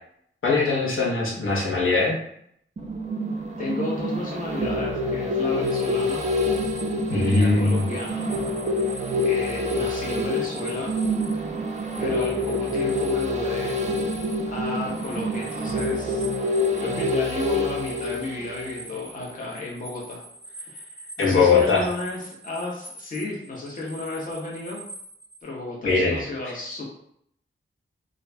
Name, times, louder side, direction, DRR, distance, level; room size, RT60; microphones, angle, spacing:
voice 1, 0.4-2.2 7.1-7.8 21.2-21.8 25.8-26.2, left 4 dB, 75° left, -4 dB, 1.0 m, -21 dB
sound 1, 2.8-19.0 19.4-19.5, left 1 dB, 35° right, 0.5 m, -27 dB
voice 2, 3.6-6.2 7.1-8.3 8.8-8.9 9.2-10.9 11.3-11.6 12.0-13.8 14.4-16.3 16.8-20.2 20.6-24.8 25.4-26.8, left 2 dB, 40° left, -4 dB, 0.8 m, -33 dB
sound 2, 5.6-25.4, right 2 dB, 20° left, 1.1 m, -44 dB
3.0 x 2.5 x 3.3 m, 0.70 s
wide cardioid pair, 135°, 21 cm